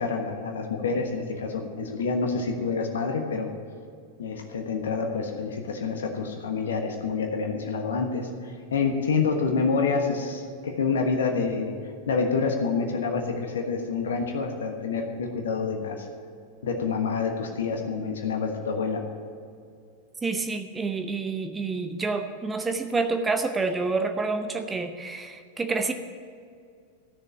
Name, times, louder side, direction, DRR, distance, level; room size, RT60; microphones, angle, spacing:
voice 1, 0.0-3.5 4.2-11.8 12.1-16.1 16.6-19.0, left 4 dB, 65° left, 3 dB, 1.3 m, -27 dB
voice 2, 20.2-25.9, right 3 dB, 15° right, 7 dB, 0.7 m, -28 dB
13.5 x 6.7 x 9.0 m, 2.3 s
figure-of-eight pair, 90°, 0 cm